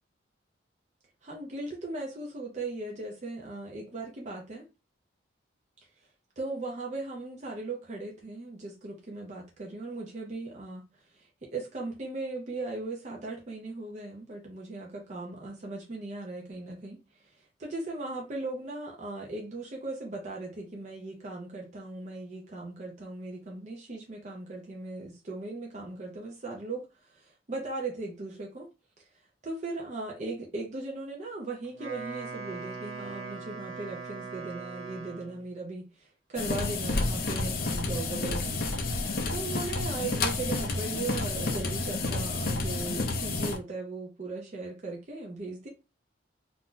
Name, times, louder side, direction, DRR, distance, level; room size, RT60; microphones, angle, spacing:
voice 1, 1.2-4.6 6.4-28.7 29.0-29.1 29.4-38.9 39.3-45.7, right 3 dB, 40° right, 0.5 m, -38 dB
Wind instrument woodwind instrument, 31.6-35.5, right 4 dB, 80° right, 1.1 m, -41 dB
sound 1, 36.4-43.6, left 3 dB, 50° left, 0.5 m, -30 dB
2.4 x 2.1 x 3.8 m
head